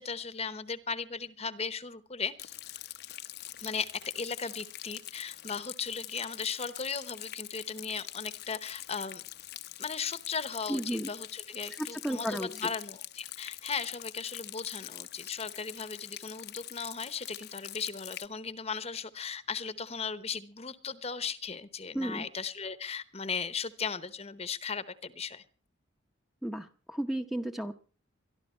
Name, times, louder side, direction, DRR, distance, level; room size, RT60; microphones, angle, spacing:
voice 1, 0.0-2.5 3.6-9.2 9.8-25.4, left 5 dB, 30° left, 14 dB, 0.9 m, -37 dB
Rain, 2.4-18.3, left 14 dB, 55° left, 0.7 m, -44 dB
voice 2, 10.7-11.1 11.7-12.5 21.9-22.2 26.4-27.7, right 1 dB, ahead, 6 dB, 0.8 m, -33 dB
23.0 x 12.5 x 4.4 m, 0.38 s
head